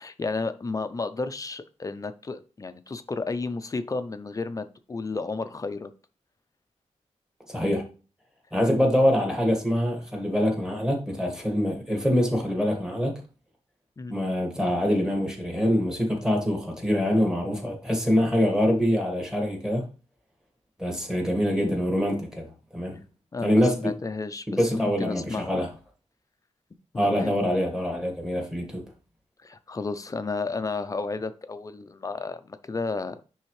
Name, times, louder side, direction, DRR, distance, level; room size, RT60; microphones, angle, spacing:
voice 1, 0.0-5.9 14.0-14.1 23.3-25.6 26.9-27.3 29.4-33.2, left 3 dB, 30° left, 0.5 m, -32 dB
voice 2, 7.5-7.8 8.5-13.1 14.1-19.8 20.8-23.0 23.4-23.9 24.5-25.7 26.9-28.8, equal, 5° right, 1.7 m, -24 dB
10.0 x 3.5 x 3.2 m
wide cardioid pair, 165°, 12 cm